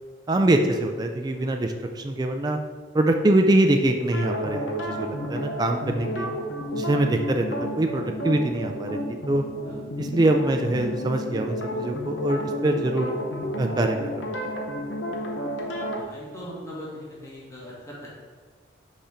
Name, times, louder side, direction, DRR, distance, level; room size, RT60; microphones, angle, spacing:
voice 1, 0.3-2.6 2.9-6.3 6.7-7.5 7.8-9.0 9.3-9.4 10.0-13.1 13.6-14.3, right 1 dB, 20° right, 4 dB, 0.3 m, -23 dB
sound 1, 4.1-16.0, equal, 90° left, 0.9 m, -31 dB
voice 2, 15.7-18.1, equal, 15° left, -6 dB, 1.6 m, -40 dB
5.5 x 4.3 x 5.0 m, 1.5 s
head